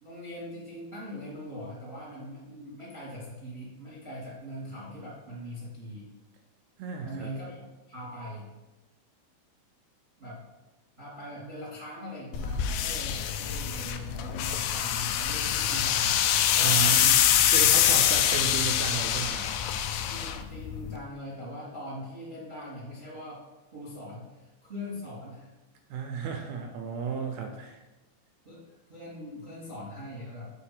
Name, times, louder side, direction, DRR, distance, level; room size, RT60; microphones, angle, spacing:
voice 1, 0.0-6.1 7.0-8.5 10.2-10.4 11.0-16.1 16.5-17.0 18.0-18.3 20.1-23.4 23.7-25.5 28.4-28.6 28.9-30.5, left 1 dB, 30° right, -7 dB, 1.1 m, -41 dB
voice 2, 6.8-7.3 16.6-17.2 17.5-19.5 25.9-27.8, right 6 dB, 80° right, 3 dB, 2.2 m, -33 dB
sound 1, 12.3-21.0, left 10 dB, 90° left, 2.8 m, -25 dB
6.4 x 4.7 x 5.8 m, 1.1 s
omnidirectional pair, 4.9 m